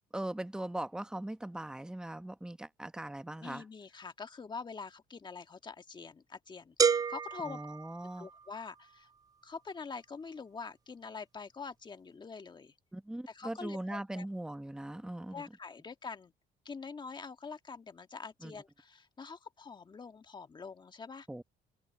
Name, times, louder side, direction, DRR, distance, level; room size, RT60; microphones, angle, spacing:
voice 1, 0.1-3.6 7.4-8.3 12.9-15.4 18.4-18.5 21.3-21.4, right 1 dB, 5° right, 1.0 m, -40 dB
voice 2, 3.4-7.6 8.2-9.1 9.4-12.7 13.3-14.3 15.3-16.3 16.6-21.3, left 5 dB, 25° left, 1.6 m, -45 dB
sound 1, 6.8-8.7, right 6 dB, 20° right, 0.3 m, -31 dB
cardioid pair, 110°, 17 cm